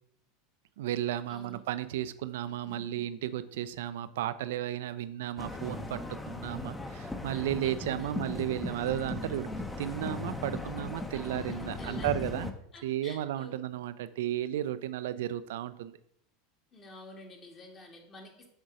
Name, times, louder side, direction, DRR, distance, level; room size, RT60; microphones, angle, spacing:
voice 1, 0.8-6.0 6.3-9.5 9.8-12.5 12.8-16.0, right 12 dB, 65° right, 14 dB, 0.4 m, -34 dB
voice 2, 1.3-1.6 2.6-3.0 7.3-8.1 11.1-11.3 11.6-12.1 12.7-13.6 16.7-18.5, left 1 dB, 30° left, 2 dB, 1.6 m, -49 dB
sound 1, 5.4-12.5, left 2 dB, 10° left, 0.7 m, -38 dB
6.5 x 3.8 x 4.8 m, 0.71 s
figure-of-eight pair, 80°, 0 cm